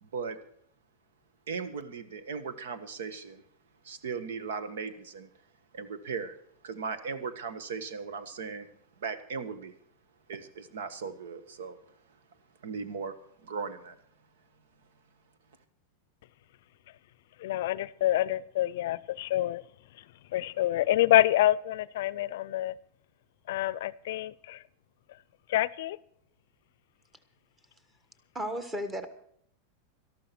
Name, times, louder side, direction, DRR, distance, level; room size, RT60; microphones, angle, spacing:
voice 1, 0.0-0.4 1.5-3.4 3.8-5.3 5.7-6.4 6.6-8.7 9.0-9.8 10.3-11.9 12.6-14.0, right 5 dB, 85° right, 12 dB, 1.5 m, -37 dB
voice 2, 17.4-19.6 20.3-22.7 23.5-24.6 25.5-26.0, left 14 dB, 70° left, 21 dB, 0.5 m, -27 dB
voice 3, 28.3-29.1, equal, 15° right, 10 dB, 1.5 m, -33 dB
13.0 x 12.0 x 6.0 m, 0.67 s
supercardioid pair, 140°, 0 cm